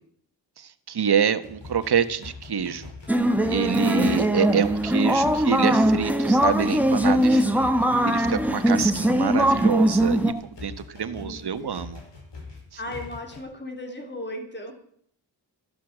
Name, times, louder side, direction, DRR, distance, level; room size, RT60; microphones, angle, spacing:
voice 1, 0.6-2.9 3.5-10.3 10.6-12.0, right 7 dB, 60° right, 10 dB, 1.4 m, -27 dB
sound 1, 1.4-13.4, left 3 dB, 70° left, 5.4 m, -43 dB
sound 2, 3.1-10.3, right 1 dB, 5° right, 1.4 m, -21 dB
voice 2, 11.2-11.7 12.8-14.7, left 1 dB, 25° left, 4 dB, 3.5 m, -36 dB
14.0 x 11.5 x 7.4 m, 0.63 s
wide cardioid pair, 110°, 43 cm